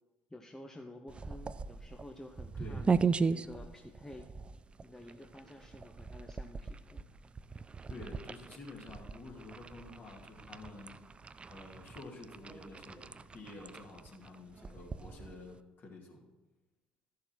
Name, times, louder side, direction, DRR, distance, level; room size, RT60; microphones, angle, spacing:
voice 1, 0.3-4.3 4.8-7.0, left 1 dB, 10° left, 4 dB, 0.8 m, -51 dB
sound 1, 1.1-15.6, right 5 dB, 25° right, 0.4 m, -38 dB
voice 2, 7.9-11.0 11.5-16.3, left 2 dB, 45° left, -1 dB, 2.3 m, -50 dB
12.5 x 6.5 x 4.5 m, 1.1 s
hypercardioid pair, 60°, 4 cm